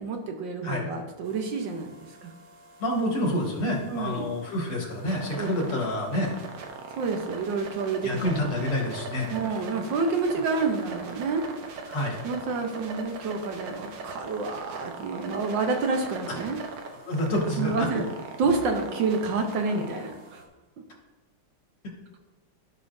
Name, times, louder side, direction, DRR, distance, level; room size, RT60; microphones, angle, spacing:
voice 1, 0.0-1.9 2.2-2.3 3.9-4.3 5.4-5.5 7.0-8.4 9.3-11.4 12.2-16.6 17.6-18.0 18.4-20.4, right 4 dB, 65° right, 4 dB, 1.4 m, -28 dB
sound 1, 1.2-20.4, right 4 dB, 85° right, 1.8 m, -41 dB
voice 2, 2.8-6.3 8.0-9.3 11.9-12.2 17.1-17.9 19.7-19.8, left 1 dB, 90° left, 0 dB, 2.6 m, -28 dB
14.0 x 5.5 x 2.6 m, 1.2 s
omnidirectional pair, 2.4 m